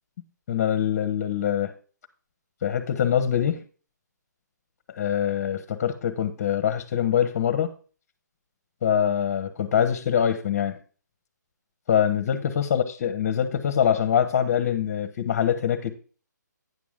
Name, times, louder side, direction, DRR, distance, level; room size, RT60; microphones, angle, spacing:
voice 1, 0.5-1.7 2.6-3.6 4.9-7.7 8.8-10.8 11.9-15.9, left 9 dB, 35° left, 1.0 m, -24 dB
9.5 x 6.2 x 3.6 m
hypercardioid pair, 150°, 10 cm